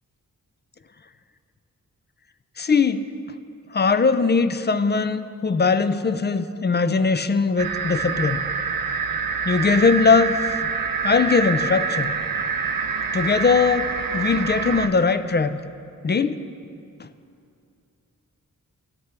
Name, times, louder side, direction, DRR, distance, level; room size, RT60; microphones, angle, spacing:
voice 1, 2.6-3.1 3.7-8.4 8.9-9.0 9.4-10.7 11.0-12.1 13.1-15.6 16.0-16.4 17.0-17.1, left 4 dB, 35° left, 12 dB, 0.4 m, -20 dB
sound 1, 7.6-14.9, right 5 dB, 80° right, 0.7 m, -26 dB
17.0 x 6.7 x 3.4 m, 2.4 s
wide cardioid pair, 100°, 33 cm